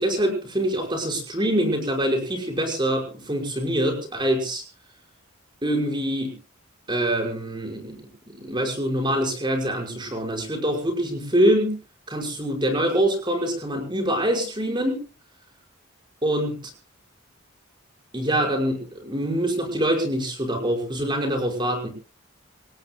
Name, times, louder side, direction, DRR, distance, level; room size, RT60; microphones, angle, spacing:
voice 1, 0.0-4.6 5.6-6.3 6.9-8.0 8.3-11.7 12.1-15.0 16.2-16.6 18.1-21.9, right 1 dB, 25° right, 2 dB, 5.7 m, -24 dB
28.0 x 18.5 x 2.3 m, 0.35 s
head